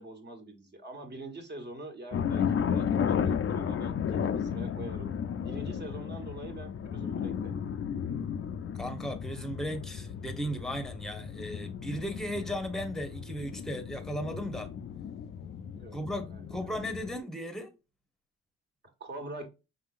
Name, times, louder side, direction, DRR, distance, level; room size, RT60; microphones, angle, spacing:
voice 1, 0.0-5.1 5.4-7.6 15.7-16.0 16.3-16.8 19.0-19.5, right 1 dB, 35° right, 1.5 m, -44 dB
sound 1, 2.1-17.2, left 7 dB, 45° left, 0.5 m, -34 dB
voice 2, 8.8-14.7 15.9-17.7, equal, ahead, 1.0 m, -36 dB
5.8 x 3.7 x 2.5 m
cardioid pair, 90°, 30 cm